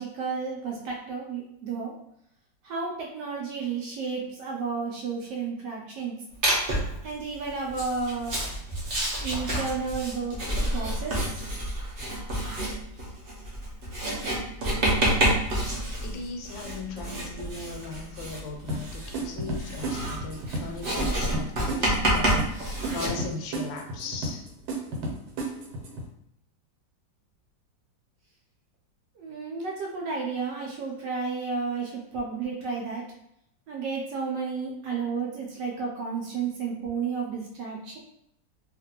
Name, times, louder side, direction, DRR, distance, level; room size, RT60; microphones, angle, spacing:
voice 1, 0.0-2.0 2.6-6.2 7.0-8.4 9.2-10.4 10.7-11.7 29.2-33.1 33.7-38.0, right 5 dB, 70° right, -1 dB, 1.1 m, -32 dB
Writing, 6.4-7.0 7.7-23.1, right 1 dB, 55° right, 0.6 m, -28 dB
voice 2, 16.0-24.5, left 3 dB, 80° left, 2 dB, 1.3 m, -38 dB
sound 1, 18.7-26.1, right 2 dB, 90° right, 1.4 m, -34 dB
2.9 x 2.5 x 2.8 m, 0.74 s
omnidirectional pair, 2.1 m